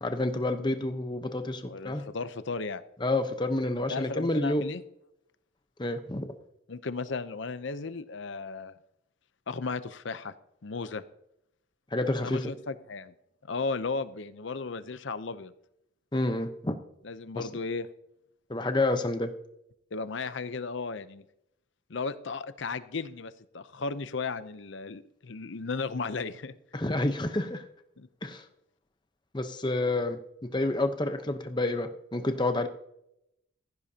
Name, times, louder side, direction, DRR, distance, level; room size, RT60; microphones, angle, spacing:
voice 1, 0.0-2.0 3.0-4.6 5.8-6.2 11.9-12.5 16.1-16.7 17.4-17.5 18.5-19.3 26.7-27.6 28.2-28.4 29.3-32.7, left 2 dB, 20° left, 7 dB, 0.9 m, -29 dB
voice 2, 1.6-2.8 3.9-4.8 6.7-8.7 9.5-10.3 10.6-11.0 12.2-13.1 13.4-15.5 17.0-17.9 19.9-21.2 21.9-26.5 28.0-28.1, left 4 dB, 65° left, 13 dB, 0.7 m, -35 dB
15.5 x 15.5 x 2.8 m, 0.80 s
head